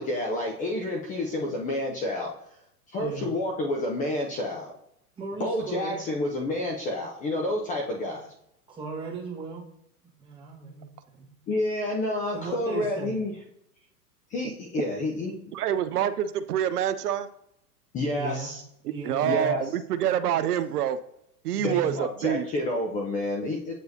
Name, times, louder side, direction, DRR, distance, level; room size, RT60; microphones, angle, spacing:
voice 1, 0.0-2.3 2.9-4.7 5.4-8.3 11.5-13.3 14.3-15.3 17.9-18.6 19.2-19.6 21.6-23.7, left 1 dB, 20° left, 0 dB, 0.5 m, -29 dB
voice 2, 2.9-3.3 5.2-6.0 8.1-8.2 8.7-9.6 10.2-11.3 12.3-13.2 18.1-18.5 18.9-19.6 21.5-22.0, right 4 dB, 10° right, -4 dB, 1.4 m, -37 dB
voice 3, 15.5-17.3 19.0-21.0 21.4-22.5, right 10 dB, 80° right, 12 dB, 0.5 m, -26 dB
8.0 x 4.7 x 2.7 m, 0.78 s
hypercardioid pair, 110°, 46 cm